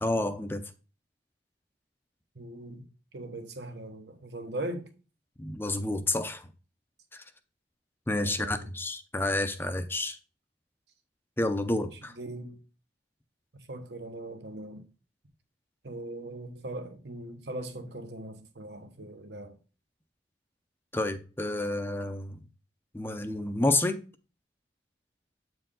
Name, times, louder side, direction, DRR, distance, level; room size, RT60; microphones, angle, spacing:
voice 1, 0.0-0.6 5.4-6.5 7.1-7.2 8.1-10.2 11.4-12.1 20.9-22.4 22.9-24.0, left 2 dB, 15° left, 0.6 m, -29 dB
voice 2, 2.3-2.8 3.1-4.9 8.2-8.7 11.6-12.6 13.7-14.8 15.8-19.5, right 1 dB, 75° right, 1.2 m, -40 dB
8.6 x 4.6 x 3.7 m
head